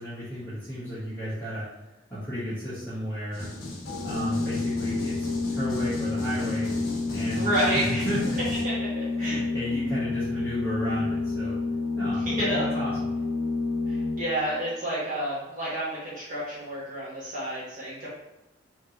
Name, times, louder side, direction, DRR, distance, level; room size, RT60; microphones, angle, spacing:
voice 1, 0.0-1.7 2.1-3.5 4.0-6.7 7.1-8.4 9.2-11.6 12.0-12.9, equal, 10° left, -12 dB, 1.3 m, -33 dB
sound 1, 3.3-8.6, left 2 dB, 50° left, 1.2 m, -37 dB
Organ, 3.9-14.6, left 3 dB, 80° left, 0.6 m, -29 dB
voice 2, 7.3-8.1 8.6-9.4 12.1-12.7 13.9-18.1, right 1 dB, 40° right, -9 dB, 1.2 m, -30 dB
5.4 x 3.0 x 3.0 m, 0.97 s
head